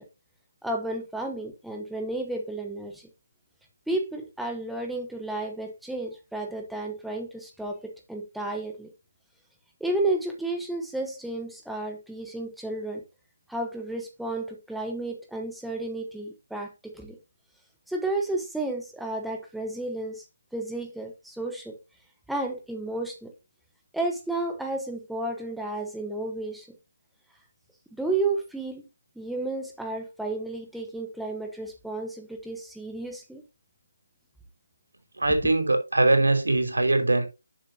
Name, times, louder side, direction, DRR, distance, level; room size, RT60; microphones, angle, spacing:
voice 1, 0.6-3.1 3.9-8.9 9.8-13.0 13.5-17.2 17.9-20.2 20.5-21.8 22.3-23.3 23.9-26.7 28.0-28.9 29.2-33.4, right 2 dB, ahead, 1.0 m, -32 dB
voice 2, 35.2-37.3, right 2 dB, 90° right, 3.3 m, -22 dB
11.0 x 6.7 x 2.8 m
figure-of-eight pair, 165°, 0 cm